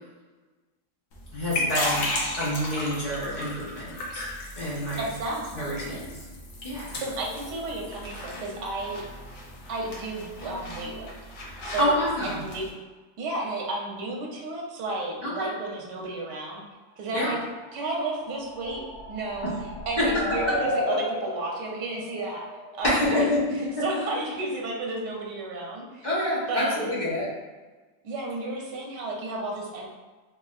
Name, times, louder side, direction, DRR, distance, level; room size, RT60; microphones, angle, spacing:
sound 1, 1.1-12.7, left 2 dB, 60° left, 1.1 m, -35 dB
voice 1, 1.3-2.1 2.4-4.2 4.6-5.1 5.5-6.1 6.6-7.0 11.8-12.4 15.2-15.5 17.1-17.3 19.4-19.5 20.0-20.6 22.8-23.4 23.8-23.9 26.0-27.3, left 1 dB, 35° left, -8 dB, 0.9 m, -27 dB
voice 2, 5.0-6.0 7.0-9.0 9.7-11.1 11.6-12.0 12.2-12.7 13.2-16.6 17.0-17.4 17.7-19.5 19.9-22.5 22.8-23.2 23.8-26.1 26.5-26.9 28.0-29.9, right 2 dB, 90° right, -1 dB, 1.4 m, -32 dB
sound 2, 17.5-23.2, left 1 dB, 90° left, 2.1 m, -34 dB
4.6 x 2.6 x 2.4 m, 1.3 s
omnidirectional pair, 1.8 m